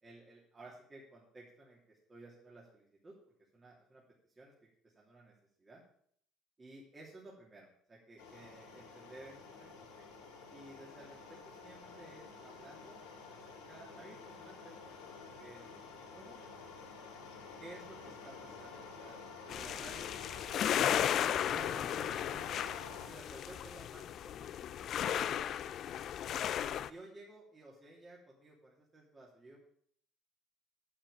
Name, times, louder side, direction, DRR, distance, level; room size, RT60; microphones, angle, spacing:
voice 1, 0.0-3.1 3.5-4.0 4.4-4.5 4.9-5.3 5.6-5.8 6.6-9.9 10.5-13.0 13.3-14.9 15.4-15.6 16.1-16.4 17.6-19.2 19.4-20.1 21.5-22.4 23.0-24.7 25.0-26.0 26.9-29.6, right 2 dB, 25° right, -4 dB, 3.1 m, -55 dB
sound 1, 8.2-23.1, left 4 dB, 75° left, 3.1 m, -50 dB
sound 2, 19.5-26.9, left 10 dB, 55° left, 0.5 m, -35 dB
8.8 x 8.1 x 6.9 m, 0.64 s
hypercardioid pair, 70°, 0 cm